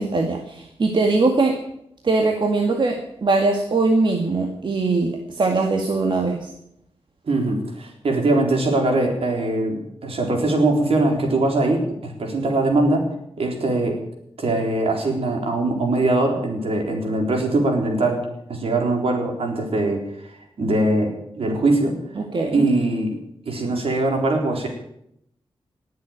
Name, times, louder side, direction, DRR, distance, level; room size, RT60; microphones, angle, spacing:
voice 1, 0.0-1.6 2.0-6.5 22.2-22.7, right 3 dB, 50° right, 2 dB, 2.0 m, -21 dB
voice 2, 7.3-13.1 13.4-14.0 14.4-18.2 18.5-20.0 20.6-22.0 22.5-23.2 23.5-24.7, right 2 dB, 70° right, 2 dB, 4.1 m, -21 dB
19.0 x 7.8 x 8.9 m, 0.77 s
cardioid pair, 75°, 10 cm